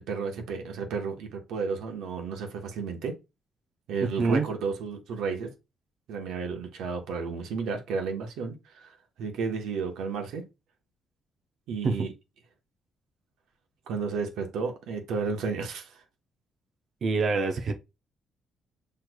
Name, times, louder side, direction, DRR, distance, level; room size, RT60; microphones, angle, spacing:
voice 1, 0.1-3.2 3.9-5.5 6.1-10.4 11.7-12.1 13.9-16.0, right 5 dB, 85° right, 1.0 m, -32 dB
voice 2, 4.0-4.5 11.8-12.1 17.0-17.7, right 4 dB, 50° right, 0.6 m, -26 dB
6.1 x 3.2 x 2.2 m
cardioid pair, 115°, 0 cm